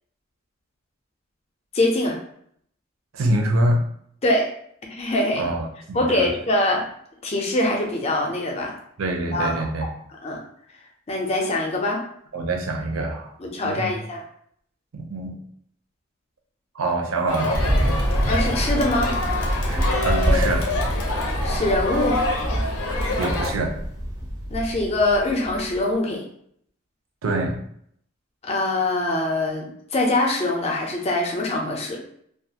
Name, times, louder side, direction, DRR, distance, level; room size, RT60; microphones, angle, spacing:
voice 1, 1.7-2.2 4.2-4.5 4.9-5.5 5.9-6.8 7.2-8.8 9.3-9.7 10.2-10.4 11.1-12.0 13.4-14.2 18.3-19.1 21.4-22.2 24.5-26.2 28.4-32.0, left 1 dB, 30° left, 1 dB, 0.5 m, -23 dB
voice 2, 3.1-3.8 5.4-6.3 9.0-9.9 12.3-13.3 13.6-14.0 14.9-15.4 16.7-17.6 19.7-20.7 22.9-23.8 27.2-27.6, right 2 dB, 75° right, 2 dB, 0.5 m, -25 dB
Crowd, 17.3-23.5, left 2 dB, 90° left, 0.6 m, -27 dB
Thunder, 17.5-25.8, equal, 20° right, 0.4 m, -25 dB
2.4 x 2.4 x 2.7 m, 0.67 s
head